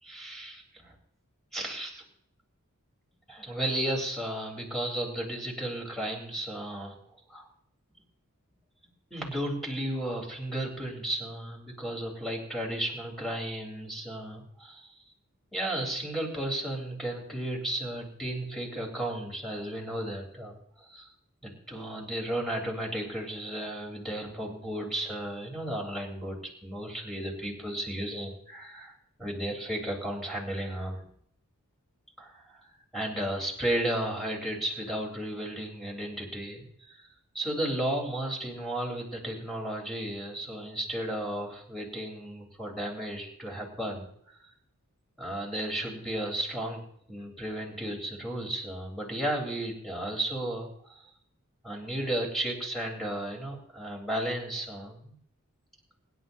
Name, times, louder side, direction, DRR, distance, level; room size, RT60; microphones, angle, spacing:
voice 1, 0.0-0.9 1.5-2.0 3.3-6.9 7.3-7.5 9.1-14.9 15.5-21.1 21.4-28.9 29.2-31.1 32.2-32.6 32.9-37.1 37.3-44.1 45.2-46.8 47.1-51.0 51.6-55.2, right 1 dB, ahead, -1 dB, 3.9 m, -34 dB
26.0 x 11.0 x 2.8 m, 0.68 s
head